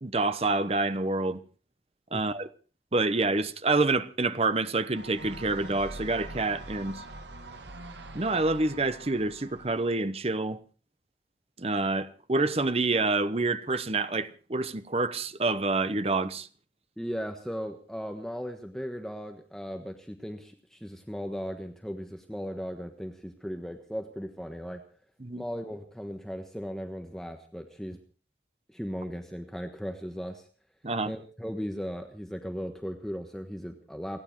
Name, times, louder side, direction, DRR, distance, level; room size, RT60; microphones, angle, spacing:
voice 1, 0.0-1.4 2.1-2.5 2.9-7.0 8.1-10.6 11.6-16.5 25.2-25.4 30.8-31.1, right 3 dB, 35° right, 0.9 m, -27 dB
sound 1, 4.9-9.9, right 2 dB, 85° right, 1.7 m, -43 dB
voice 2, 17.0-24.8 25.4-28.0 28.7-30.5 31.0-34.2, equal, 5° left, 1.3 m, -37 dB
29.5 x 9.9 x 4.6 m
head